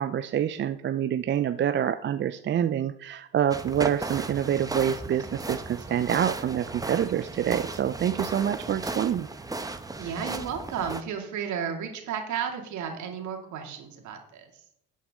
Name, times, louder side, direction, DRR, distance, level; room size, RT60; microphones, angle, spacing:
voice 1, 0.0-9.3, right 9 dB, 35° right, 10 dB, 0.6 m, -26 dB
sound 1, 3.5-11.0, right 2 dB, 10° right, 1.0 m, -35 dB
voice 2, 10.0-14.6, right 7 dB, 60° right, 2 dB, 2.5 m, -33 dB
12.0 x 8.4 x 3.7 m, 0.75 s
hypercardioid pair, 70°, 32 cm